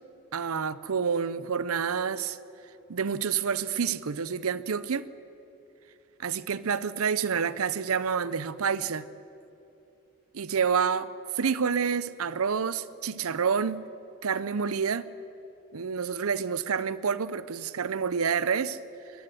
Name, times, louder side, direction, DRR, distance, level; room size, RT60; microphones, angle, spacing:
voice 1, 0.3-2.4 2.9-5.1 6.2-9.0 10.3-11.1 11.4-13.8 14.2-15.1 15.7-18.8, right 6 dB, 85° right, 0.6 m, -28 dB
22.5 x 13.0 x 9.1 m
head